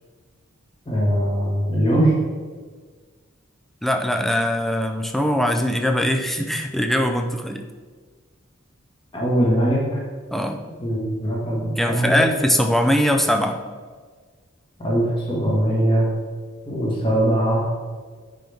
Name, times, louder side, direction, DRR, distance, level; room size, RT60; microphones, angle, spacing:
voice 1, 0.9-2.2 9.1-9.8 10.8-12.2 14.8-16.1 16.7-17.6, right 1 dB, 25° left, -5 dB, 1.6 m, -21 dB
voice 2, 3.8-7.7 10.3-10.6 11.8-13.6, equal, ahead, 5 dB, 0.5 m, -21 dB
9.3 x 5.7 x 3.5 m, 1.5 s
head